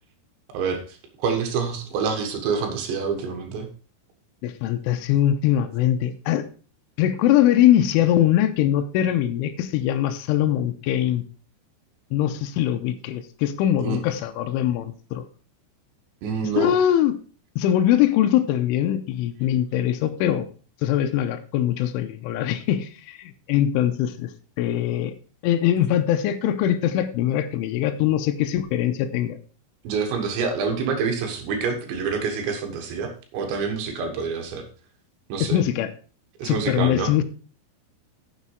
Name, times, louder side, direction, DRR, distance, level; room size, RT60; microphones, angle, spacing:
voice 1, 0.5-3.7 13.8-14.0 16.2-16.7 29.8-34.7 35.3-35.6 36.4-37.1, right 5 dB, 70° right, 4 dB, 3.5 m, -27 dB
voice 2, 4.4-6.4 7.0-11.2 12.1-15.2 16.6-17.2 17.6-20.5 20.8-24.3 24.6-25.1 25.4-29.4 35.4-35.9 36.4-37.2, left 11 dB, 80° left, 6 dB, 3.1 m, -22 dB
9.8 x 7.3 x 4.7 m, 0.39 s
omnidirectional pair, 5.9 m